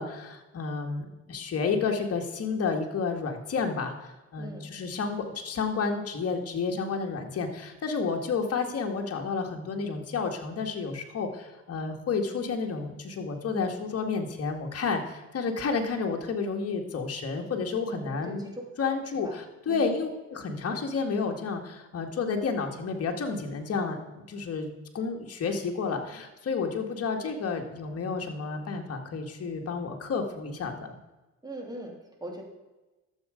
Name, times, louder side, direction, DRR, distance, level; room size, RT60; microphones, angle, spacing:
voice 1, 0.0-18.5 18.8-19.3 19.7-24.0 24.3-31.0, left 4 dB, 50° left, 3 dB, 1.9 m, -31 dB
voice 2, 4.4-4.7 17.9-19.9 31.4-32.4, right 1 dB, 15° right, 2 dB, 2.9 m, -42 dB
12.0 x 7.8 x 5.1 m, 1.1 s
cardioid pair, 90°, 30 cm